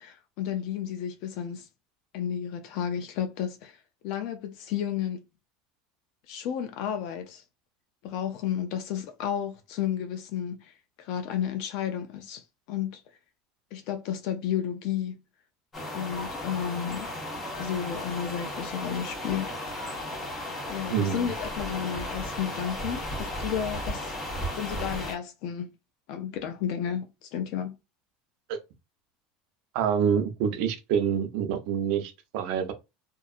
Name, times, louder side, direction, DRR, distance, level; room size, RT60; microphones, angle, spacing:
voice 1, 0.0-1.7 2.1-3.8 4.0-5.2 6.3-7.4 8.0-13.0 13.7-15.2 15.9-17.1 17.6-19.5 20.7-24.1 24.5-25.7 26.1-27.7, left 9 dB, 60° left, 0.4 m, -32 dB
sound 1, 15.7-25.2, left 1 dB, 25° left, 1.2 m, -35 dB
voice 2, 20.9-21.3 28.5-28.6 29.7-32.7, right 8 dB, 65° right, 0.6 m, -27 dB
2.6 x 2.3 x 2.4 m
supercardioid pair, 125°, 0 cm